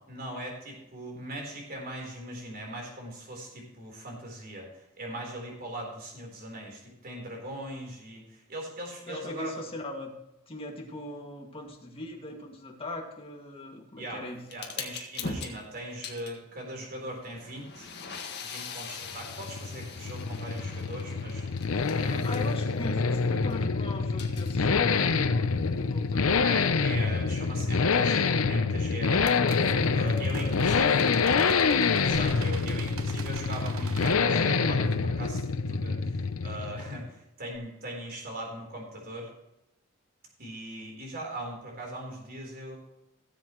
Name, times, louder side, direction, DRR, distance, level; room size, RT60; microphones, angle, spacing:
voice 1, 0.1-9.5 14.0-14.2 14.5-17.9 18.4-22.4 26.4-29.4 29.9-30.9 32.0-35.4 35.7-39.3 40.4-42.8, right 1 dB, 45° right, 0 dB, 4.0 m, -40 dB
voice 2, 9.1-10.2 10.5-14.5 21.7-26.4 29.7-31.0 31.3-31.5, left 1 dB, 25° left, 1 dB, 2.1 m, -41 dB
sound 1, 14.5-23.5 23.9-26.7, left 4 dB, 55° left, 1.7 m, -42 dB
sound 2, 19.1-37.1, left 4 dB, 90° left, 0.7 m, -26 dB
sound 3, 28.2-28.4 29.1-34.1, right 5 dB, 85° right, 1.0 m, -43 dB
17.0 x 7.8 x 3.1 m, 0.91 s
head